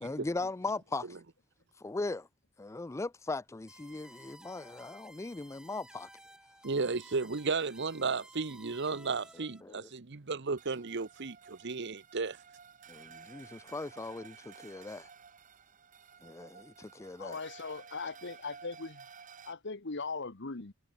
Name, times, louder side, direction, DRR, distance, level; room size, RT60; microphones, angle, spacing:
voice 1, 0.0-1.2 1.8-2.3 2.6-6.1 9.3-9.9 12.9-15.1 16.2-17.4, left 3 dB, 15° left, 0.3 m, -39 dB
sound 1, 3.7-9.6, right 1 dB, 5° right, 6.1 m, -55 dB
voice 2, 6.6-12.4, right 4 dB, 55° right, 1.0 m, -34 dB
sound 2, 10.6-19.5, right 6 dB, 40° right, 1.3 m, -54 dB
voice 3, 17.2-19.1 19.4-20.7, left 4 dB, 60° left, 1.3 m, -39 dB
head